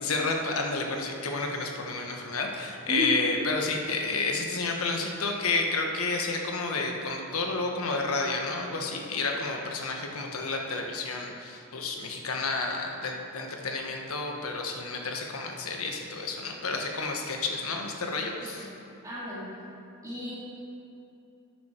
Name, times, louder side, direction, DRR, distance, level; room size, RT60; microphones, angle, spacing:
voice 1, 0.0-18.7, left 3 dB, 85° left, 2 dB, 1.3 m, -30 dB
voice 2, 19.0-19.5 20.0-20.4, left 1 dB, 15° right, -9 dB, 2.6 m, -33 dB
11.5 x 9.1 x 4.5 m, 2.7 s
head